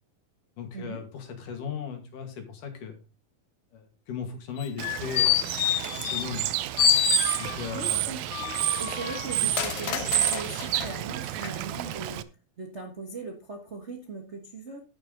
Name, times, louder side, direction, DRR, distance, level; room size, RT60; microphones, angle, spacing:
voice 1, 0.6-3.0 3.7-5.5 6.0-6.5 6.8-6.9 7.4-8.2 9.4-9.5, left 6 dB, 85° left, 5 dB, 3.7 m, -37 dB
sound 1, 4.6-6.5 6.8-7.8 8.3-10.9 11.4-11.5, left 12 dB, 70° left, 1.5 m, -28 dB
Bird / Water, 4.8-12.2, right 14 dB, 75° right, 1.9 m, -30 dB
voice 2, 7.7-12.2 12.6-14.8, right 3 dB, 40° right, 2 dB, 0.9 m, -39 dB
11.0 x 9.1 x 3.9 m, 0.31 s
omnidirectional pair, 3.6 m